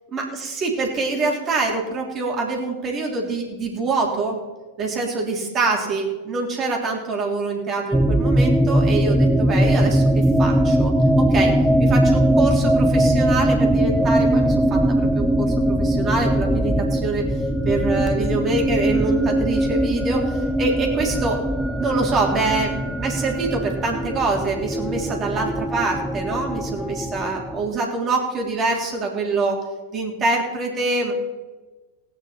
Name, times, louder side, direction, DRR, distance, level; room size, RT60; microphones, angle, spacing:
voice 1, 0.1-4.4 4.8-10.9 11.2-11.5 11.8-17.2 17.6-21.4 21.8-29.6 29.9-31.1, right 3 dB, 25° right, 0 dB, 3.3 m, -25 dB
sound 1, 7.9-27.8, right 1 dB, ahead, 0.6 m, -20 dB
17.5 x 9.6 x 4.4 m, 1.2 s
figure-of-eight pair, 90°, 0 cm